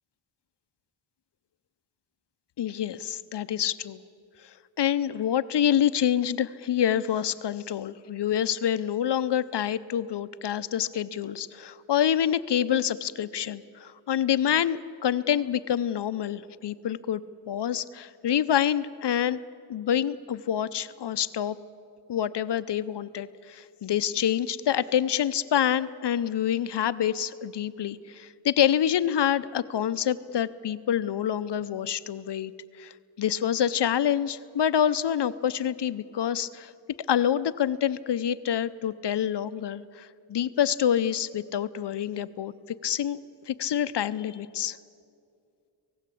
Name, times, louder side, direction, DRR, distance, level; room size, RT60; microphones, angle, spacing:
voice 1, 2.6-4.0 4.4-17.2 17.5-19.4 19.7-21.6 22.1-32.5 32.8-32.9 33.2-36.7 37.1-42.5 42.8-43.2 43.5-44.8, left 10 dB, 60° left, 14 dB, 0.7 m, -27 dB
26.0 x 18.0 x 8.4 m, 2.4 s
wide cardioid pair, 115°, 47 cm